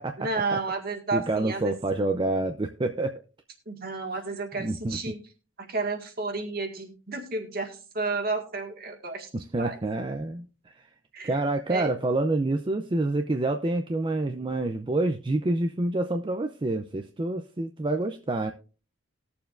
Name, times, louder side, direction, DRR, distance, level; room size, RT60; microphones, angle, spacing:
voice 1, 0.2-1.8 3.7-5.2 5.6-9.3 9.6-9.8 11.1-11.4 11.7-11.9, right 3 dB, 50° right, 3 dB, 1.8 m, -31 dB
voice 2, 1.1-3.2 4.6-5.1 9.3-10.7 11.2-18.5, right 2 dB, 25° right, 5 dB, 0.5 m, -27 dB
20.0 x 7.0 x 2.5 m, 0.35 s
head